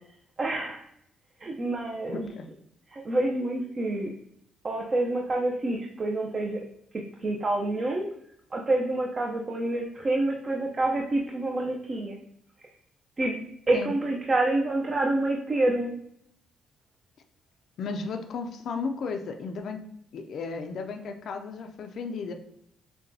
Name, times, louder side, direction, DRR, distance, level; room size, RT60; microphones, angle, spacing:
voice 1, 0.4-0.8 1.4-2.3 2.9-4.1 4.6-6.6 6.9-8.0 8.5-12.2 13.2-13.4 13.7-16.0, right 2 dB, 35° right, 0 dB, 0.5 m, -27 dB
voice 2, 2.1-2.5 13.7-13.9 17.8-19.8 20.1-22.3, left 4 dB, 65° left, 5 dB, 0.4 m, -34 dB
6.6 x 2.2 x 2.6 m, 0.74 s
cardioid pair, 90°, 0 cm